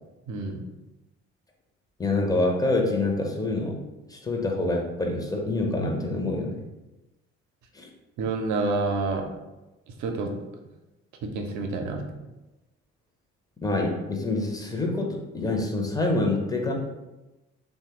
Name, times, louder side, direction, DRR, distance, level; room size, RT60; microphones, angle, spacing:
voice 1, 0.3-0.6 8.2-9.2 10.0-10.3 11.2-12.0, right 3 dB, 60° right, 3 dB, 0.6 m, -28 dB
voice 2, 2.0-3.8 4.1-6.6 7.7-7.9 13.6-16.7, left 2 dB, 10° left, 1 dB, 0.7 m, -26 dB
3.1 x 2.2 x 2.9 m, 1.0 s
hypercardioid pair, 50°, 34 cm